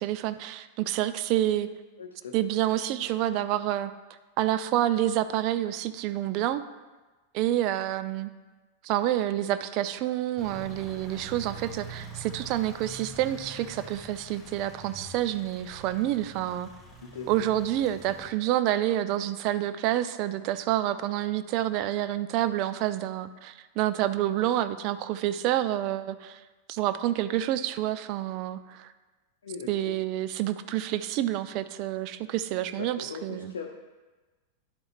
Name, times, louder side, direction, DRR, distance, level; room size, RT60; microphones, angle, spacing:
voice 1, 0.0-1.7 2.3-3.9 4.4-6.6 7.3-8.3 8.8-16.7 17.3-26.4 26.7-28.9 29.7-33.5, right 13 dB, 40° right, 12 dB, 0.4 m, -28 dB
voice 2, 2.0-2.4 17.1-17.5 29.4-30.0 32.8-33.7, left 5 dB, 65° left, 0 dB, 0.7 m, -39 dB
sound 1, 10.4-18.3, right 2 dB, ahead, 1.8 m, -45 dB
10.5 x 7.7 x 2.4 m, 1.2 s
figure-of-eight pair, 90°, 0 cm